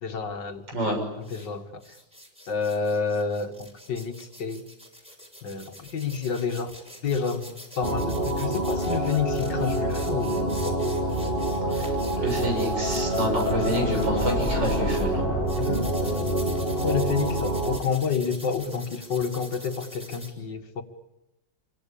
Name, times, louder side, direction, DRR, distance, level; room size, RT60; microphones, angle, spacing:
voice 1, 0.0-1.8 2.5-4.7 5.4-6.7 7.0-10.8 13.7-13.9 15.6-16.4 16.8-20.8, left 5 dB, 70° left, 6 dB, 2.6 m, -29 dB
sound 1, 1.2-1.5 1.8-15.1 15.5-20.3, equal, 5° right, 6.0 m, -45 dB
sound 2, 7.8-17.8, right 1 dB, 30° right, 3.3 m, -27 dB
sound 3, 10.9-17.9, left 2 dB, 35° left, 2.3 m, -35 dB
voice 2, 12.2-15.2, right 1 dB, 70° right, 3 dB, 7.4 m, -28 dB
28.0 x 24.0 x 8.6 m, 0.91 s
omnidirectional pair, 2.0 m